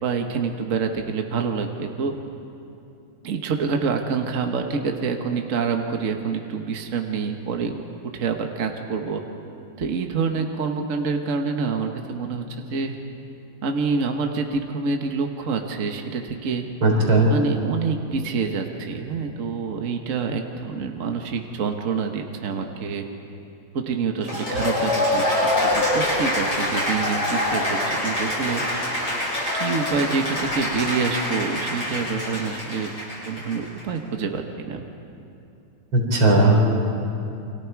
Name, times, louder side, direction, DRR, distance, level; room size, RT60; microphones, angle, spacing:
voice 1, 0.0-2.1 3.2-7.8 8.1-9.2 9.8-13.0 13.6-16.6 17.3-23.0 23.7-28.6 29.5-32.9 33.3-34.8, right 5 dB, 45° right, 4 dB, 1.5 m, -27 dB
voice 2, 16.8-17.3 35.9-36.6, right 2 dB, 80° right, -1 dB, 4.7 m, -17 dB
Cheering / Applause, 24.2-33.8, left 1 dB, 50° left, 8.0 m, -25 dB
29.5 x 25.0 x 4.7 m, 2.7 s
omnidirectional pair, 2.2 m